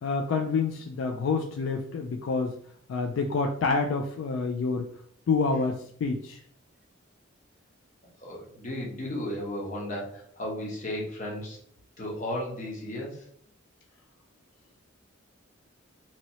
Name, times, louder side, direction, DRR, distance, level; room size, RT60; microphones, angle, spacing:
voice 1, 0.0-2.5 2.9-4.9 5.3-6.4, left 4 dB, 70° left, 4 dB, 0.3 m, -28 dB
voice 2, 8.2-11.6 12.0-13.2, left 1 dB, 35° left, -3 dB, 0.9 m, -34 dB
2.9 x 2.8 x 2.8 m, 0.63 s
head